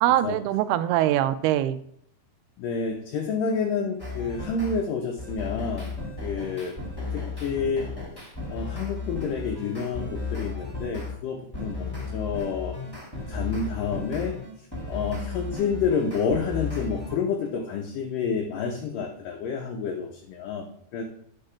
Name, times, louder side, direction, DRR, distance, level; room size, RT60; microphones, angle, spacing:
voice 1, 0.0-1.8, right 13 dB, 80° right, 12 dB, 2.5 m, -23 dB
voice 2, 2.6-6.8 7.1-7.9 8.5-12.8 13.3-14.4 14.9-21.0, left 5 dB, 75° left, 2 dB, 2.1 m, -29 dB
sound 1, 4.0-4.8 5.2-11.1 11.5-17.1, left 4 dB, 10° left, 1.3 m, -34 dB
8.6 x 5.3 x 5.8 m, 0.68 s
omnidirectional pair, 4.8 m